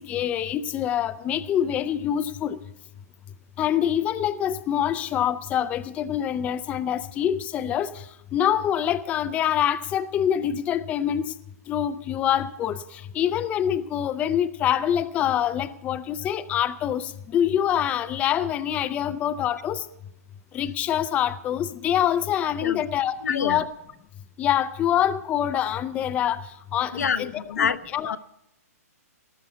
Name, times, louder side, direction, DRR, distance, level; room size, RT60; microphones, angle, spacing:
voice 1, 0.0-2.6 3.6-7.9 8.3-11.3 11.7-19.8 20.5-23.7 24.4-26.4 26.7-28.2, left 10 dB, 15° left, 12 dB, 0.5 m, -25 dB
voice 2, 23.2-23.6 26.9-28.2, left 7 dB, 80° left, 12 dB, 1.0 m, -27 dB
18.5 x 6.9 x 8.2 m, 0.82 s
hypercardioid pair, 150°, 9 cm